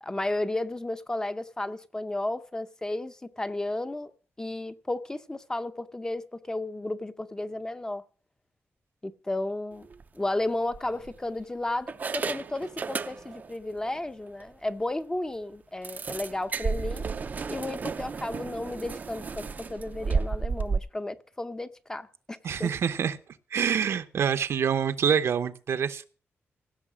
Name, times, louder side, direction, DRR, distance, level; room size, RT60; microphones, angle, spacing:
voice 1, 0.0-8.0 9.0-9.9 10.1-17.1 17.5-22.7, left 2 dB, 15° left, 0.6 m, -33 dB
sound 1, 9.8-10.0 10.7-11.4 11.9-13.5 13.8-14.0 14.4-14.5 14.8-14.9 15.8-20.8, right 5 dB, 35° right, 0.5 m, -32 dB
voice 2, 22.4-23.2 23.5-26.0, right 7 dB, 65° right, 0.8 m, -26 dB
16.5 x 6.6 x 6.1 m
wide cardioid pair, 165°, 5 cm